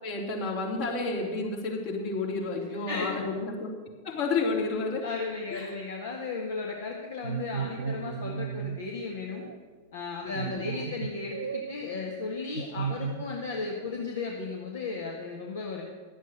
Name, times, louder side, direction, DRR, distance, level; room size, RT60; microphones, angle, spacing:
voice 1, 0.0-3.7 4.0-5.0 5.5-5.7 10.2-10.6, left 3 dB, 50° left, -1 dB, 3.3 m, -31 dB
voice 2, 2.9-3.3 5.0-9.5 9.9-15.8, left 4 dB, 70° left, -1 dB, 1.6 m, -35 dB
sound 1, 7.2-8.8 9.4-9.6 10.3-11.8 12.5-13.4 13.7-14.6, right 6 dB, 70° right, 0.7 m, -35 dB
12.0 x 8.1 x 8.0 m, 1.5 s
figure-of-eight pair, 95°, 0 cm